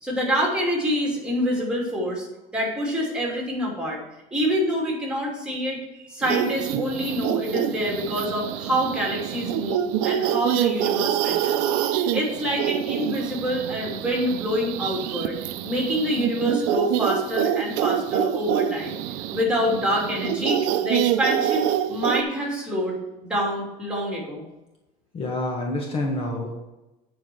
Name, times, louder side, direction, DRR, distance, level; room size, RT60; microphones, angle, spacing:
voice 1, 0.0-2.3 2.5-4.0 4.3-11.6 12.1-15.3 15.6-19.0 19.3-23.0 23.2-24.4, equal, 5° right, -2 dB, 2.9 m, -26 dB
sound 1, 6.2-22.2, right 11 dB, 90° right, 0.6 m, -26 dB
voice 2, 25.1-26.6, left 2 dB, 35° left, 0 dB, 1.4 m, -27 dB
9.7 x 4.7 x 6.1 m, 0.99 s
cardioid pair, 140°, 17 cm